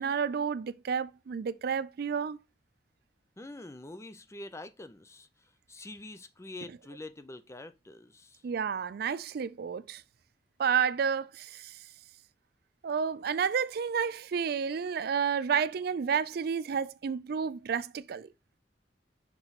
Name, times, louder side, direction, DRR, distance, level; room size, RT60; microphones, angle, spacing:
voice 1, 0.0-2.4 8.4-10.0 10.6-11.8 12.8-18.3, right 7 dB, 60° right, 0.4 m, -30 dB
voice 2, 3.4-5.3 5.7-8.4, left 2 dB, 15° left, 0.5 m, -45 dB
5.9 x 4.5 x 4.0 m
head